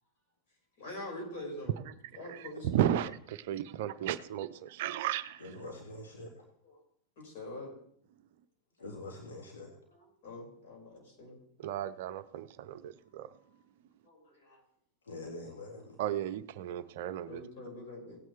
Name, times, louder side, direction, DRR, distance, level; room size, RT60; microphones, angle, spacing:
voice 1, 0.8-1.8 2.1-2.7 6.6-6.8 7.2-7.7 9.9-11.4 14.0-14.6 17.3-18.2, left 1 dB, 50° left, -1 dB, 5.6 m, -44 dB
voice 2, 2.3-5.4 11.6-13.3 16.0-17.4, right 11 dB, 50° right, 13 dB, 0.5 m, -34 dB
voice 3, 5.4-6.3 8.8-9.7 15.1-16.0, left 2 dB, 70° left, -1 dB, 1.8 m, -44 dB
17.0 x 9.2 x 3.3 m, 0.66 s
figure-of-eight pair, 90°, 0 cm